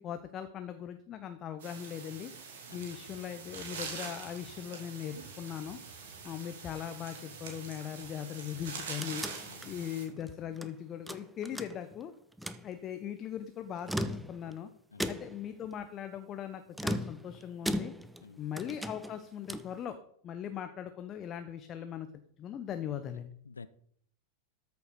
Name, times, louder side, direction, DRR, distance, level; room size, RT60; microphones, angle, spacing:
voice 1, 0.0-2.3 2.7-5.8 6.2-12.1 12.6-14.7 15.1-17.9 18.4-20.0 20.2-22.1 22.4-23.3, left 9 dB, 30° left, 9 dB, 0.8 m, -40 dB
sound 1, 1.6-10.1, right 5 dB, 60° right, 2.8 m, -44 dB
voice 2, 2.7-2.9 9.5-9.7 14.9-15.1 18.2-18.5 23.4-23.7, left 4 dB, 75° left, 15 dB, 0.6 m, -50 dB
sound 2, 8.5-10.7 11.1-12.0 12.3-12.7 13.7-14.6 15.0-15.5 16.7-18.3 18.6-19.8, equal, 5° right, 0.7 m, -37 dB
13.0 x 7.0 x 4.1 m, 0.67 s
figure-of-eight pair, 90°, 0 cm